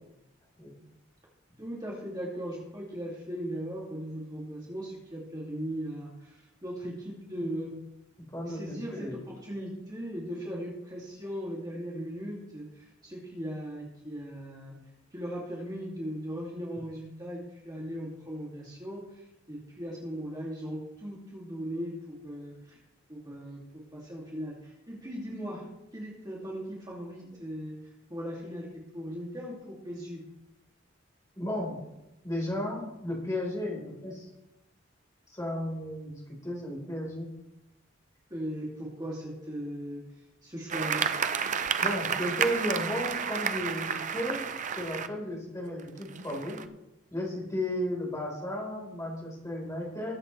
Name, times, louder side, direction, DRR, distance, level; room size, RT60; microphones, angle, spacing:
voice 1, 1.6-7.7 8.5-14.7 15.1-19.0 19.5-22.5 23.1-23.6 23.9-25.6 25.9-27.7 28.1-28.7 28.9-30.2 38.3-40.0 40.4-41.1, equal, 20° right, -5 dB, 2.5 m, -38 dB
voice 2, 8.3-9.2 31.4-31.8 32.2-34.3 35.3-37.3 41.8-44.5 44.7-46.6 47.1-50.1, left 1 dB, 15° left, -2 dB, 4.2 m, -34 dB
sound 1, 40.7-45.1 45.8-46.6, right 7 dB, 40° right, 0.5 m, -31 dB
21.0 x 8.2 x 3.3 m, 0.93 s
head